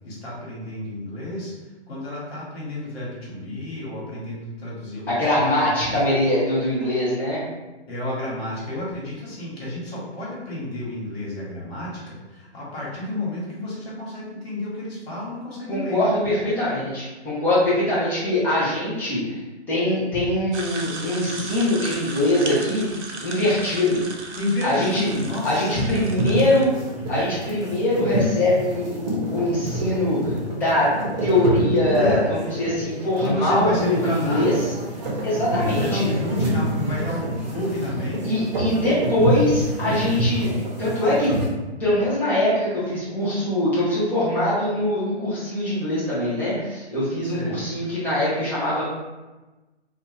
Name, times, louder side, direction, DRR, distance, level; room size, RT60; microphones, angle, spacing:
voice 1, 0.0-6.0 7.9-16.0 24.4-25.8 26.6-26.7 31.9-32.2 33.2-34.6 35.6-38.4 47.2-47.8, left 1 dB, 65° left, -6 dB, 1.5 m, -31 dB
voice 2, 5.1-7.4 15.7-19.4 19.7-24.0 24.6-25.1 25.4-26.7 27.1-30.9 31.2-32.2 32.6-34.5 35.2-36.1 38.2-40.5 40.8-41.3 41.8-48.8, left 1 dB, 5° left, -11 dB, 0.6 m, -22 dB
sound 1, 20.5-26.7, right 3 dB, 80° right, 0.7 m, -36 dB
sound 2, 24.8-41.5, right 1 dB, 35° right, 0.8 m, -27 dB
2.7 x 2.4 x 3.0 m, 1.1 s
hypercardioid pair, 140°, 34 cm